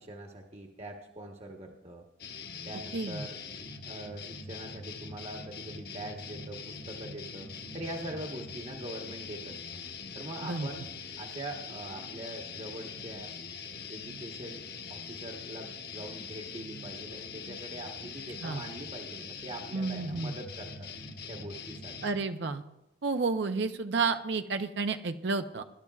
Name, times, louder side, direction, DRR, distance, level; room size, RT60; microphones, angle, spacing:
voice 1, 0.0-2.0 2.6-3.4 3.8-9.8 10.1-10.9 11.2-13.3 13.9-14.6 14.9-20.9 21.3-22.0, right 1 dB, 35° right, 1 dB, 1.0 m, -43 dB
sound 1, 2.2-22.1, left 5 dB, 55° left, 1.2 m, -43 dB
voice 2, 2.9-3.3 10.4-10.7 18.4-18.6 19.7-20.3 22.0-22.6 23.0-25.6, right 4 dB, 65° right, 8 dB, 0.6 m, -31 dB
21.0 x 12.0 x 2.4 m, 0.91 s
head